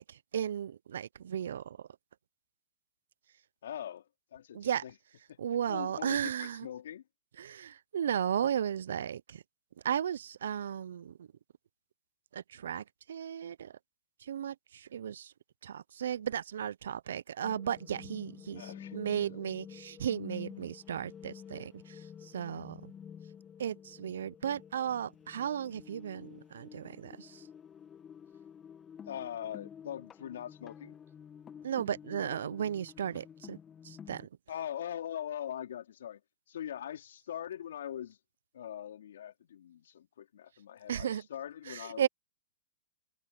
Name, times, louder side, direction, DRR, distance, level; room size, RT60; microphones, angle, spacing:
voice 1, 0.0-1.8 4.5-4.8 5.4-6.7 7.4-9.4 9.8-11.3 12.3-13.7 14.2-15.3 15.6-22.0 22.3-22.9 23.6-27.4 31.6-33.6 33.8-34.3 40.9-41.2 41.7-42.1, right 9 dB, 70° right, 0.8 m, -35 dB
voice 2, 3.6-4.9 5.7-7.0 18.5-19.0 19.3-19.4 29.1-31.0 34.5-36.2 36.5-38.2 38.5-42.1, left 10 dB, 70° left, 3.8 m, -42 dB
sound 1, 17.4-34.3, left 8 dB, 20° left, 2.4 m, -50 dB
hypercardioid pair, 120°, 0 cm